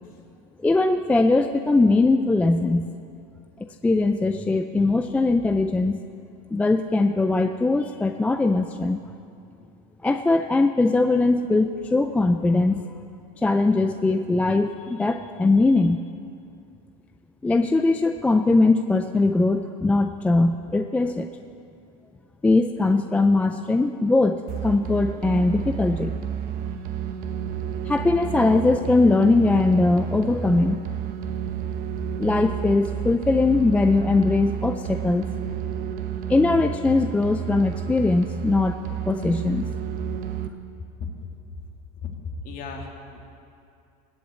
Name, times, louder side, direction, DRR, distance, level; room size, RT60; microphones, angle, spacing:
voice 1, 0.6-2.9 3.6-6.0 6.5-9.0 10.0-12.8 13.4-16.0 17.4-21.3 22.4-26.2 27.9-30.8 32.2-35.3 36.3-39.7, left 3 dB, 5° left, 8 dB, 0.3 m, -21 dB
sound 1, 24.5-40.5, right 8 dB, 45° right, 1.0 m, -31 dB
voice 2, 42.0-43.3, left 5 dB, 40° left, 2 dB, 2.3 m, -35 dB
19.5 x 7.8 x 8.2 m, 2.6 s
supercardioid pair, 135°, 21 cm